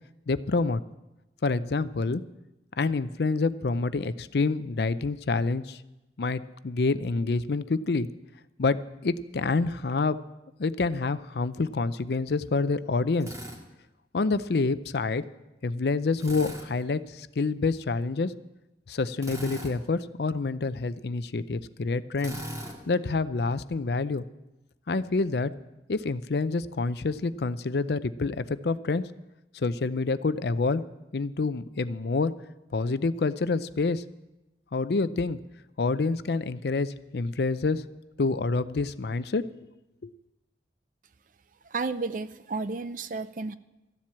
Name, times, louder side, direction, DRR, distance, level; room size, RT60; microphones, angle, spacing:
voice 1, 0.3-0.8 1.4-2.2 2.8-5.8 6.2-8.1 8.6-8.8 9.0-10.2 10.6-13.3 14.1-15.2 15.6-18.3 18.9-22.4 22.9-24.2 24.9-25.5 25.9-29.0 29.5-30.8 31.1-32.3 32.7-34.0 34.7-35.4 35.8-37.8 38.2-39.4 40.0-40.1, left 3 dB, 65° left, 14 dB, 0.5 m, -27 dB
Drill, 13.2-13.6 16.2-16.7 19.2-19.7 22.2-22.8, equal, 20° right, 1.9 m, -38 dB
voice 2, 41.7-43.5, right 4 dB, 45° right, 14 dB, 0.5 m, -32 dB
14.0 x 7.5 x 8.6 m, 0.98 s
head